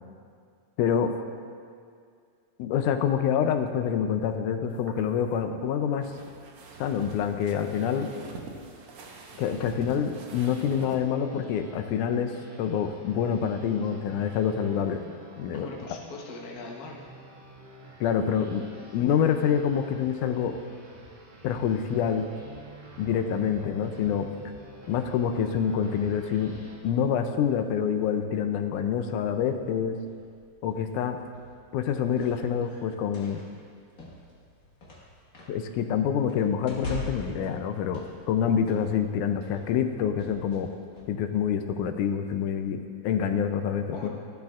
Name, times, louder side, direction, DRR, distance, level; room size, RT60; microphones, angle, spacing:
voice 1, 0.8-1.1 2.6-6.1 6.8-8.1 9.4-12.3 12.6-15.0 15.4-15.7 18.0-18.6 18.9-20.5 21.4-22.2 23.0-24.3 24.9-26.5 26.8-30.0 30.6-31.2 31.7-33.4 35.5-40.7 41.1-44.1, left 8 dB, 85° left, 7 dB, 2.1 m, -26 dB
sound 1, 4.7-11.0, right 4 dB, 65° right, 1.9 m, -45 dB
sound 2, 9.3-26.8, right 2 dB, 50° right, 2.2 m, -49 dB
voice 2, 15.5-17.0 43.9-44.1, left 3 dB, 55° left, -2 dB, 1.0 m, -41 dB
sound 3, 29.6-41.0, left 1 dB, 40° left, 1.3 m, -44 dB
14.0 x 11.5 x 2.4 m, 2.2 s
omnidirectional pair, 3.5 m